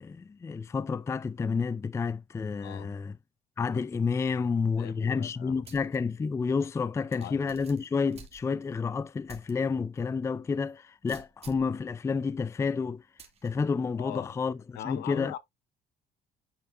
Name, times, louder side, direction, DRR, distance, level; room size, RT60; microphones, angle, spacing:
voice 1, 0.0-3.2 3.6-13.0 13.4-15.3, left 5 dB, 15° left, 0.3 m, -30 dB
voice 2, 2.6-2.9 4.4-4.5 4.8-5.6 7.2-7.5 14.0-14.3 14.7-15.4, left 13 dB, 80° left, 0.7 m, -40 dB
sound 1, 5.6-6.0 6.4-6.5 7.1-8.8 9.3-9.5 10.0-10.1 11.1-11.7 13.2-13.5, right 5 dB, 40° right, 2.3 m, -50 dB
9.6 x 4.3 x 2.5 m
cardioid pair, 110°, 17 cm